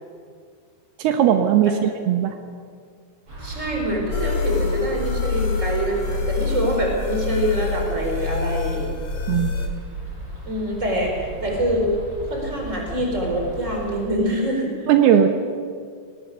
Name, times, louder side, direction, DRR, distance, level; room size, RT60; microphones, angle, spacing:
voice 1, 1.0-2.3 9.3-9.5 14.9-15.3, right 9 dB, 80° right, 6 dB, 3.0 m, -18 dB
sound 1, 3.3-14.0, right 1 dB, 40° right, 8.1 m, -35 dB
voice 2, 3.4-8.9 10.5-12.0 12.3-14.9, equal, 20° right, 1 dB, 4.8 m, -25 dB
sound 2, 4.1-9.7, left 4 dB, 40° left, 2.3 m, -26 dB
21.0 x 20.5 x 6.7 m, 2.1 s
omnidirectional pair, 4.6 m